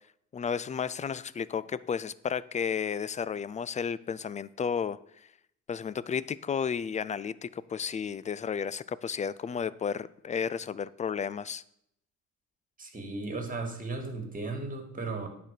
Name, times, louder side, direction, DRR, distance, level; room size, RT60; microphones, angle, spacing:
voice 1, 0.3-5.0 5.7-11.6, left 7 dB, 25° left, 18 dB, 0.4 m, -32 dB
voice 2, 12.8-15.3, right 3 dB, 25° right, 4 dB, 2.2 m, -35 dB
9.8 x 4.6 x 6.6 m, 0.74 s
cardioid pair, 90°, 30 cm